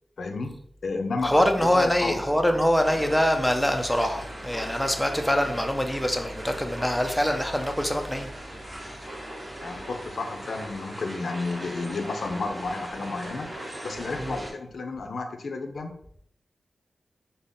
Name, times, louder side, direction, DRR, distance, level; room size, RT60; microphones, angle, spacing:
voice 1, 0.2-0.5 0.8-2.2 9.6-13.5 13.8-15.9, left 3 dB, 65° left, 0.5 m, -31 dB
voice 2, 1.2-8.3 14.2-14.3, equal, 5° left, 0.3 m, -24 dB
sound 1, 2.8-14.5, right 1 dB, 25° right, 0.8 m, -39 dB
3.5 x 2.0 x 3.8 m
wide cardioid pair, 125°, 0 cm